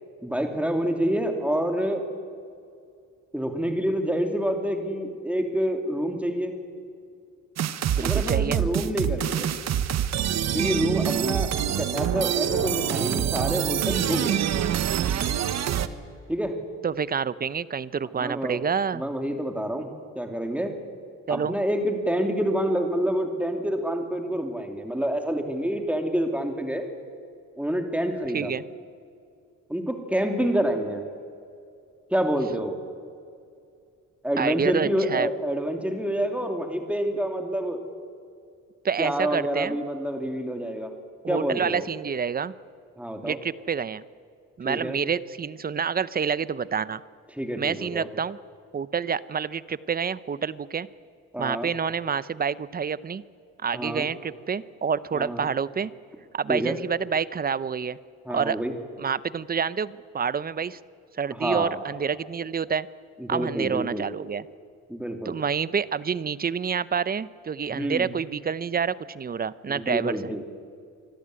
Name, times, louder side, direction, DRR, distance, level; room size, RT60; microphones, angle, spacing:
voice 1, 0.2-2.0 3.3-6.5 8.0-9.5 10.5-11.5 11.8-14.4 16.3-16.5 18.2-18.6 18.9-20.7 21.3-26.9 27.6-28.5 29.7-31.0 32.1-32.7 34.2-37.8 39.0-40.9 41.3-41.9 43.0-43.4 44.6-45.0 47.3-48.1 51.3-51.7 53.7-54.1 55.1-55.5 56.5-56.7 58.2-58.7 61.3-61.8 63.2-64.1 64.9-65.3 67.7-68.1 69.7-70.4, equal, 5° right, 5 dB, 2.9 m, -27 dB
sound 1, 7.6-15.9, right 10 dB, 60° right, 1.1 m, -25 dB
voice 2, 7.9-8.6 16.8-19.0 21.3-21.6 28.3-28.6 34.4-35.3 38.8-39.8 41.2-42.5 43.2-44.0 44.6-47.0 47.6-48.4 48.7-50.9 51.4-53.2 53.6-55.9 56.3-58.0 58.3-58.6 59.0-60.8 61.2-62.9 63.3-64.4 65.2-70.3, right 6 dB, 30° right, 18 dB, 0.7 m, -28 dB
24.5 x 13.5 x 9.6 m, 2.3 s
cardioid pair, 90°, 30 cm